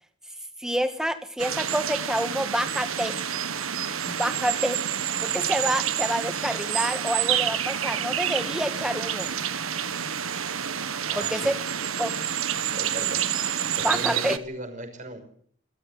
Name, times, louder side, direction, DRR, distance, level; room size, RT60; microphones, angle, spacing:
voice 1, 0.6-3.1 4.0-4.8 5.2-9.3 11.2-11.6 12.0-12.1 13.8-14.4, equal, 5° right, 9 dB, 1.7 m, -28 dB
sound 1, 1.4-14.4, right 9 dB, 80° right, 1.5 m, -28 dB
voice 2, 11.1-11.5 12.7-15.2, right 1 dB, 35° right, 6 dB, 5.6 m, -37 dB
27.0 x 13.5 x 7.9 m, 0.62 s
head